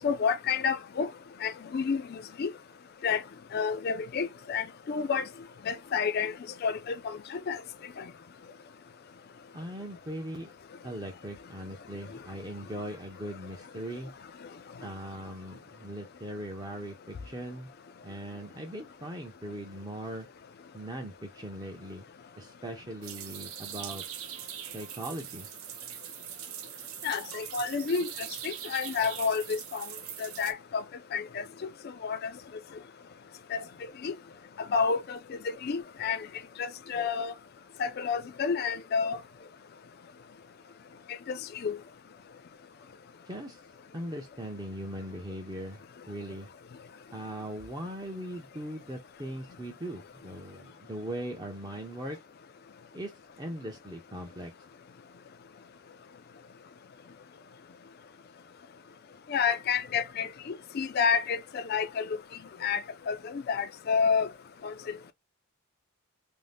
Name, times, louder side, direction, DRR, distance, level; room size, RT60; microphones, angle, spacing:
voice 1, 0.0-1.1 1.4-2.5 3.0-3.2 3.5-5.2 5.7-6.3 6.6-7.6 8.0-8.1 27.0-28.1 28.4-29.9 30.2-30.8 31.1-31.4 32.0-32.3 33.5-33.6 34.0-34.1 34.7-35.2 35.6-36.3 36.6-37.3 37.8-39.2 41.3-41.4 41.6-41.8 59.3-60.3 60.7-62.2 62.6-62.8 63.1-64.3 64.6-64.7, left 6 dB, 45° left, 0.3 m, -29 dB
voice 2, 9.5-10.5 10.8-14.1 14.8-17.7 18.0-20.3 20.7-22.1 22.4-24.0 24.7-25.5 43.3-43.6 43.9-46.5 47.1-52.2 52.9-53.1 53.4-54.5, right 1 dB, 20° right, 0.5 m, -40 dB
sound 1, 23.0-30.5, right 10 dB, 75° right, 0.5 m, -42 dB
2.6 x 2.1 x 3.3 m
head